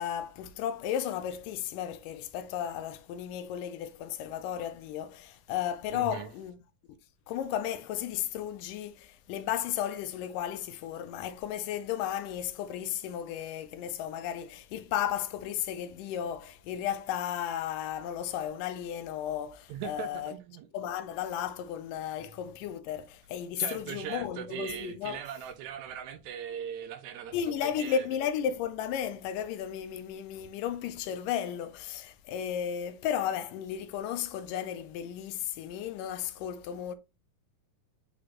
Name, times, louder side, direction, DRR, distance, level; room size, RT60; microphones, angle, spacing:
voice 1, 0.0-6.5 7.3-20.4 20.7-25.2 27.3-36.9, left 9 dB, 80° left, 2.2 m, -34 dB
voice 2, 5.9-6.3 19.7-20.7 23.6-27.4 27.6-28.1, right 9 dB, 80° right, 1.7 m, -39 dB
7.6 x 4.2 x 3.0 m
omnidirectional pair, 3.9 m